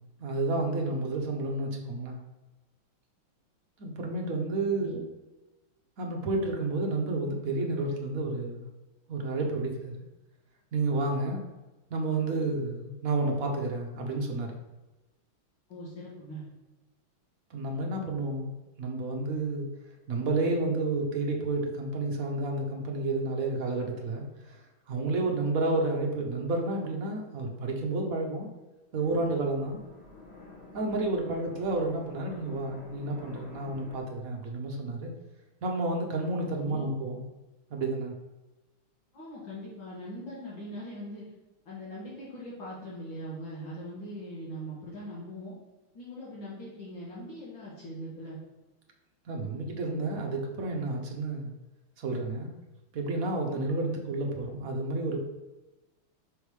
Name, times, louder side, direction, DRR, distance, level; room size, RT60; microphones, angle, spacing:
voice 1, 0.2-2.2 3.8-5.0 6.0-8.7 9.1-9.9 10.7-11.4 11.9-14.6 17.5-18.5 18.8-19.7 20.1-24.6 24.9-28.5 28.9-29.8 30.7-35.1 35.6-37.2 37.7-38.1 49.3-51.5 52.0-52.5 52.9-55.2, right 2 dB, 55° right, 1 dB, 1.0 m, -30 dB
voice 2, 15.7-16.4 36.6-36.9 39.1-41.3 41.7-45.5 45.9-48.4, equal, 60° left, -6 dB, 2.3 m, -41 dB
sound 1, 28.9-34.0, left 3 dB, 35° left, 1.4 m, -49 dB
6.3 x 3.5 x 4.7 m, 1.1 s
omnidirectional pair, 2.4 m